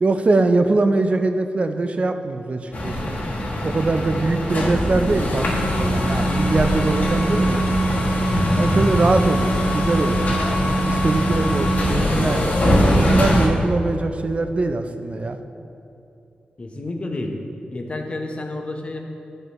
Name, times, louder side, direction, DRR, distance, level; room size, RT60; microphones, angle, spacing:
voice 1, 0.0-3.1 3.6-7.6 8.6-10.4 10.8-15.4, right 3 dB, 40° right, 8 dB, 0.4 m, -22 dB
sound 1, 2.7-13.5, equal, 60° left, 1.3 m, -21 dB
voice 2, 16.6-17.3 17.7-19.0, left 2 dB, 35° left, 3 dB, 0.7 m, -30 dB
9.5 x 5.2 x 3.0 m, 2.7 s
wide cardioid pair, 95°, 3 cm